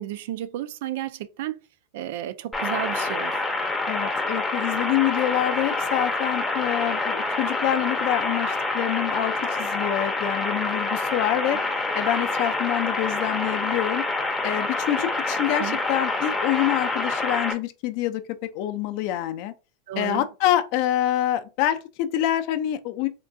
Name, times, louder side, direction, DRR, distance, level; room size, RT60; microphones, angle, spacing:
voice 1, 0.0-1.6 1.9-3.5 11.5-11.6 15.6-15.8 19.9-20.3, right 13 dB, 70° right, 0.3 m, -32 dB
sound 1, 2.5-17.5, left 2 dB, 10° left, 0.6 m, -27 dB
voice 2, 3.9-11.6 11.9-14.0 14.4-19.5 20.0-23.1, left 13 dB, 55° left, 0.4 m, -26 dB
3.6 x 2.3 x 2.5 m
supercardioid pair, 140°, 0 cm